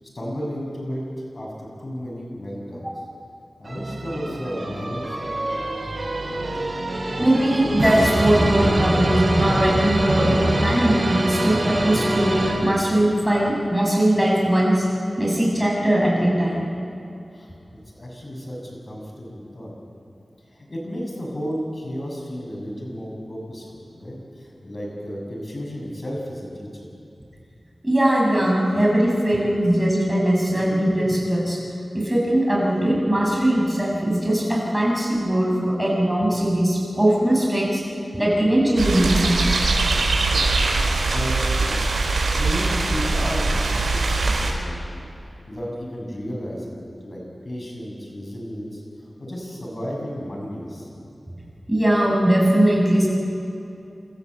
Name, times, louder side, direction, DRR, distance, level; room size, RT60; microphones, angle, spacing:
voice 1, 0.1-1.0 1.3-2.9 3.6-5.3 17.3-17.5 17.9-19.7 20.5-26.9 40.3-41.8 42.2-45.1 45.5-48.8 49.2-50.9, equal, 45° left, -2 dB, 7.0 m, -33 dB
sound 1, 3.7-13.2, right 1 dB, 55° right, 3.2 m, -25 dB
voice 2, 7.2-14.9 15.2-16.7 27.8-31.6 31.9-37.8 38.1-39.6 51.7-53.1, right 1 dB, 10° right, -3 dB, 7.1 m, -20 dB
sound 2, 38.8-44.5, right 3 dB, 90° right, 4.6 m, -22 dB
28.0 x 14.0 x 8.1 m, 2.7 s
wide cardioid pair, 60°, 0 cm